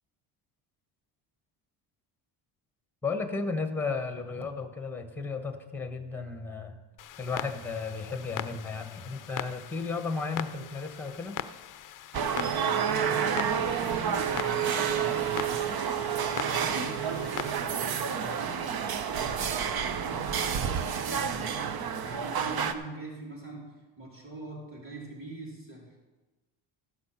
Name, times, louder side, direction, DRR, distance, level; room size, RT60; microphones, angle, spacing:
voice 1, 3.0-6.7 7.2-11.4, left 4 dB, 5° left, 7 dB, 1.1 m, -34 dB
Clock, 7.0-17.5, left 11 dB, 40° left, 0.6 m, -41 dB
sound 1, 12.1-22.7, right 7 dB, 45° right, 0.8 m, -29 dB
voice 2, 12.9-15.5 16.3-18.7 19.2-21.5 22.0-23.7 24.0-26.0, right 2 dB, 25° right, -3 dB, 4.2 m, -43 dB
13.5 x 6.1 x 5.8 m, 1.2 s
cardioid pair, 90°, 50 cm